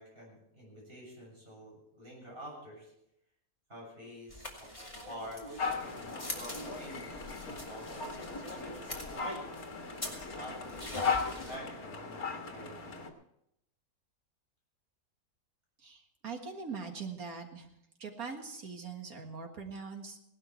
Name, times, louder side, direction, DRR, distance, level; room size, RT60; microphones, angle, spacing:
voice 1, 0.0-2.9 3.7-4.7 5.1-8.2 8.5-9.0 10.2-11.0 11.3-13.0, equal, 40° right, -3 dB, 7.4 m, -48 dB
sound 1, 4.3-11.6, left 1 dB, 20° left, 2.5 m, -43 dB
sound 2, 5.6-13.1, left 5 dB, 80° left, 2.0 m, -38 dB
voice 2, 15.8-17.7 18.0-20.2, right 5 dB, 75° right, 3 dB, 2.2 m, -42 dB
18.0 x 12.0 x 4.5 m, 0.79 s
omnidirectional pair, 1.5 m